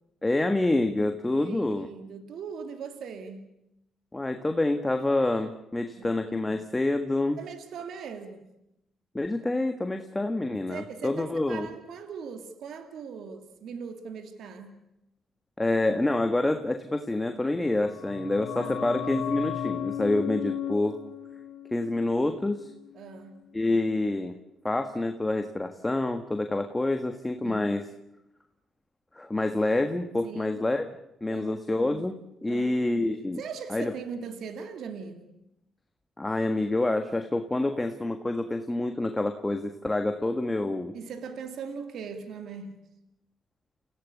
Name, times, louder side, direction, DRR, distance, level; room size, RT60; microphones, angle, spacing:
voice 1, 0.2-1.9 4.1-7.4 9.1-11.7 15.6-21.0 21.7-22.7 23.5-24.3 24.6-27.8 29.1-30.8 31.2-33.4 33.7-33.9 36.2-40.9, left 2 dB, 15° left, 6 dB, 1.5 m, -27 dB
voice 2, 1.3-3.5 5.9-6.1 7.4-8.5 10.7-14.8 18.6-18.9 22.9-23.5 27.4-27.7 30.2-30.6 31.3-31.7 32.5-32.8 33.4-35.3 40.9-42.8, right 6 dB, 70° right, 8 dB, 2.5 m, -40 dB
sound 1, 17.7-23.1 23.3-23.4, left 9 dB, 80° left, 1.9 m, -36 dB
30.0 x 16.0 x 8.5 m, 0.88 s
cardioid pair, 90°, 0 cm